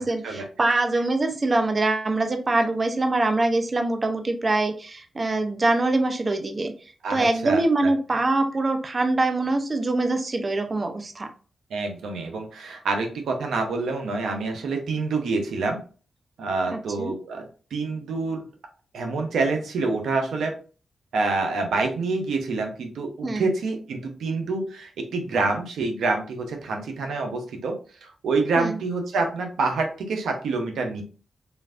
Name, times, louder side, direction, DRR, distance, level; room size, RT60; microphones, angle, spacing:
voice 1, 0.0-6.7 7.1-11.3 17.0-17.2 23.2-23.4 28.6-28.8, right 2 dB, 45° right, 6 dB, 0.6 m, -24 dB
voice 2, 7.0-7.9 11.7-15.8 16.4-18.4 18.9-20.5 21.1-27.7 28.0-31.0, right 3 dB, 85° right, 4 dB, 0.6 m, -27 dB
3.2 x 2.5 x 2.3 m, 0.38 s
cardioid pair, 50°, 0 cm